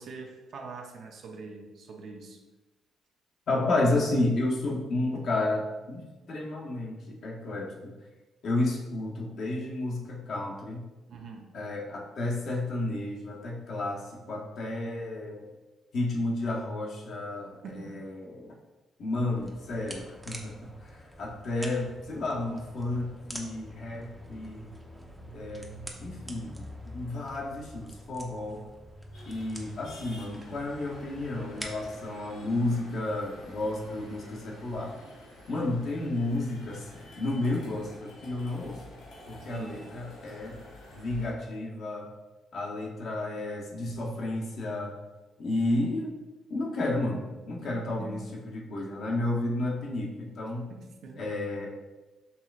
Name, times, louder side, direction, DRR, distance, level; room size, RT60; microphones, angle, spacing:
voice 1, 0.0-2.4 11.1-11.5 17.6-17.9 39.4-39.9 47.6-48.3 50.7-51.3, right 4 dB, 70° right, 2 dB, 0.7 m, -44 dB
voice 2, 3.5-7.9 8.4-10.9 11.5-15.5 15.9-18.5 19.0-20.5 20.8-24.7 25.3-25.7 26.0-26.6 26.9-28.6 29.3-34.9 35.5-36.9 37.2-38.8 39.3-40.6 40.9-42.1 42.5-44.9 45.4-46.2 46.5-50.7 51.2-51.7, left 2 dB, 60° left, -1 dB, 0.9 m, -31 dB
sound 1, 19.3-32.0, equal, 5° right, 0.7 m, -45 dB
sound 2, 29.1-41.3, left 1 dB, 85° left, 1.4 m, -50 dB
5.5 x 3.1 x 2.4 m, 1.2 s
cardioid pair, 90°, 0 cm